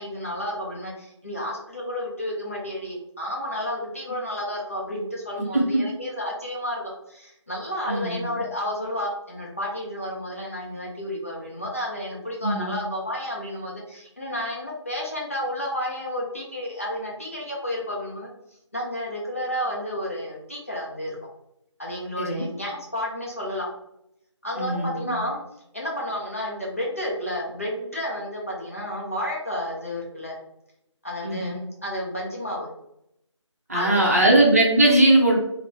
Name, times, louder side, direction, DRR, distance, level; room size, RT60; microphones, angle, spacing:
voice 1, 0.0-18.3 18.7-21.2 21.8-23.7 24.4-25.4 25.7-30.4 31.0-32.7 33.7-34.4, equal, 30° left, -3 dB, 0.5 m, -31 dB
voice 2, 7.9-8.2 12.4-12.7 22.2-22.4 24.6-25.2 31.2-31.5 33.7-35.4, right 1 dB, 30° right, -3 dB, 0.6 m, -20 dB
3.0 x 2.0 x 3.3 m, 0.79 s
figure-of-eight pair, 160°, 16 cm